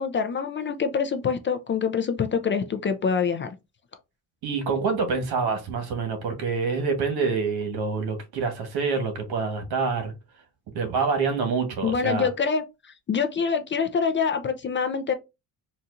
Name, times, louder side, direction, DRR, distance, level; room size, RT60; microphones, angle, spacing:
voice 1, 0.0-3.5 11.8-15.1, left 6 dB, 30° left, 0.4 m, -25 dB
voice 2, 4.4-10.1 10.7-12.3, right 4 dB, 70° right, 1.3 m, -26 dB
4.1 x 2.5 x 2.5 m
cardioid pair, 110°, 39 cm